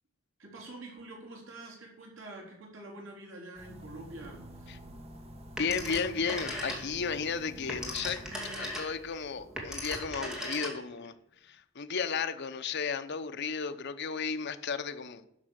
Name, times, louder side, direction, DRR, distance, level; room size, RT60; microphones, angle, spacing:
voice 1, 0.4-4.8, right 2 dB, 75° right, -1 dB, 3.8 m, -46 dB
sound 1, 3.6-10.0, right 1 dB, 30° right, 1.3 m, -52 dB
sound 2, 3.7-8.7, right 1 dB, 50° right, 1.2 m, -51 dB
voice 2, 5.6-8.2 8.6-11.1 11.4-15.2, left 5 dB, 55° left, 9 dB, 0.8 m, -34 dB
Telephone, 5.6-7.1 7.5-11.1, equal, 5° right, 2.4 m, -38 dB
11.5 x 6.9 x 6.5 m, 0.77 s
head